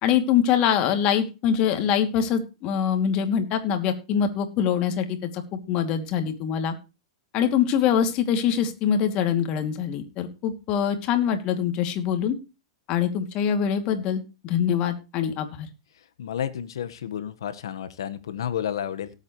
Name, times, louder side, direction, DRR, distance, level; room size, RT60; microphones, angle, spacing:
voice 1, 0.0-6.7 7.3-12.4 12.9-15.7, left 8 dB, 40° left, 6 dB, 2.6 m, -24 dB
voice 2, 16.2-19.1, left 9 dB, 75° left, 12 dB, 1.4 m, -31 dB
18.0 x 8.2 x 3.2 m, 0.29 s
hypercardioid pair, 115°, 2 cm